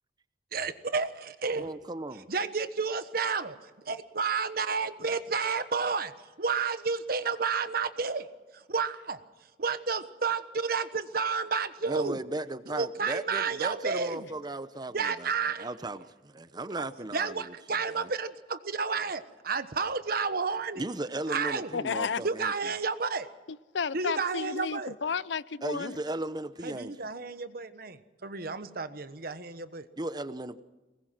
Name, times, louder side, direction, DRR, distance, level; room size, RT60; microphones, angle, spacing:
voice 1, 0.5-1.7 2.3-3.6 3.8-6.1 6.4-8.3 8.5-9.2 9.6-12.2 12.7-14.3 14.9-15.7 16.8-16.9 17.1-20.8 21.3-21.7 22.2-23.3 23.9-24.9 26.6-29.9, right 5 dB, 55° right, 1.3 m, -31 dB
voice 2, 1.6-2.3 11.9-15.3 15.6-17.5 20.8-22.5 25.6-27.0 30.0-30.6, right 2 dB, 25° right, 0.8 m, -36 dB
voice 3, 21.7-22.2 23.5-26.0, left 5 dB, 90° left, 0.6 m, -32 dB
23.0 x 20.0 x 6.1 m
head